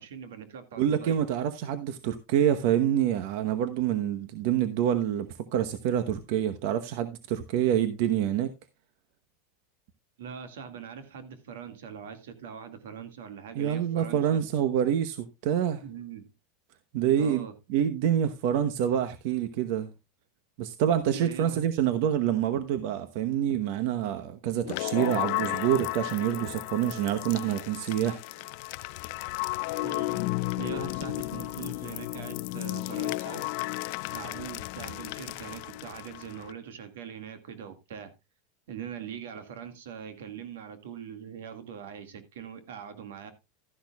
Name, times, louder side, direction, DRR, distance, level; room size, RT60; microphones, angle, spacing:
voice 1, 0.0-1.2 10.2-14.4 15.8-16.3 17.2-17.5 21.1-21.6 29.8-30.2 30.6-33.5 34.1-38.1 38.7-43.3, right 7 dB, 90° right, 1.9 m, -42 dB
voice 2, 0.8-8.5 13.5-15.8 16.9-19.9 20.6-28.2, right 10 dB, 55° right, 0.9 m, -27 dB
sound 1, 24.6-36.5, left 21 dB, 55° left, 0.5 m, -34 dB
12.5 x 10.5 x 2.3 m
supercardioid pair, 155°, 0 cm